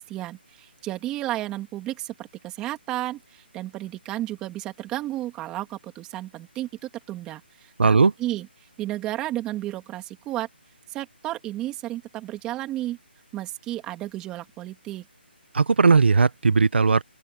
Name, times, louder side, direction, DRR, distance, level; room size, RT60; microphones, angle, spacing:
voice 1, 0.0-10.5 10.9-13.0 13.3-15.0, right 15 dB, 10° right, 3.1 m, -33 dB
voice 2, 7.8-8.1 15.5-17.0, right 4 dB, 70° right, 1.3 m, -18 dB
open air
hypercardioid pair, 170°, 6 cm